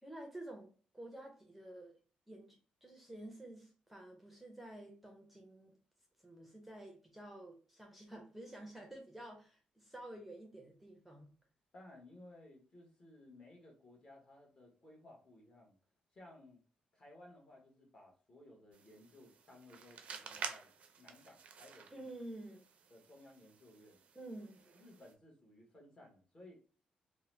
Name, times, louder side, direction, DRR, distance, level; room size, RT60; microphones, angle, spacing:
voice 1, 0.0-2.0 2.3-5.7 6.2-11.3 21.9-22.7 24.1-24.6, right 1 dB, 5° right, 0.6 m, -50 dB
voice 2, 11.7-15.8 16.1-16.6 16.9-20.7 21.0-22.1 22.9-24.0 24.7-26.6, left 1 dB, 35° left, 1.1 m, -58 dB
sound 1, 18.7-25.1, right 6 dB, 55° right, 0.4 m, -50 dB
2.8 x 2.0 x 3.0 m
cardioid pair, 120°, 3 cm